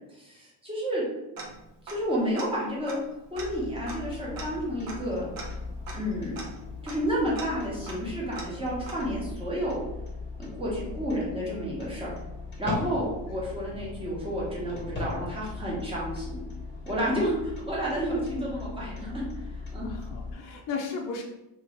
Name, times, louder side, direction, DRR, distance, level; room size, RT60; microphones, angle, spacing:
voice 1, 0.1-1.0 1.8-3.0 3.3-5.2 5.9-6.4 6.8-9.8 10.4-12.1 12.6-16.4 16.8-19.9, equal, 10° right, -6 dB, 1.1 m, -31 dB
Tick-tock, 1.4-2.1 2.4-2.5 2.8-9.3, right 3 dB, 50° right, 0.8 m, -43 dB
sound 1, 3.3-20.3, left 4 dB, 25° left, 0.9 m, -39 dB
voice 2, 12.8-13.3 13.7-14.0 19.8-21.2, left 5 dB, 45° left, 0 dB, 0.5 m, -36 dB
3.0 x 2.9 x 3.1 m, 0.94 s
cardioid pair, 150°, 45 cm